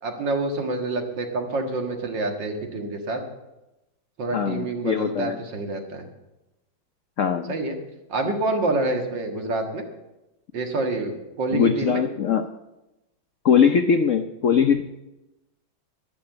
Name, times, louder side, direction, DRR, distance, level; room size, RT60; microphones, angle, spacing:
voice 1, 0.0-3.2 4.2-6.0 7.5-7.8 8.1-9.8 10.5-12.0, right 2 dB, 60° right, 4 dB, 2.4 m, -27 dB
voice 2, 4.3-5.4 7.2-7.5 11.5-12.4 13.4-14.8, left 7 dB, 70° left, 7 dB, 0.7 m, -21 dB
12.0 x 10.5 x 7.9 m, 0.97 s
omnidirectional pair, 2.2 m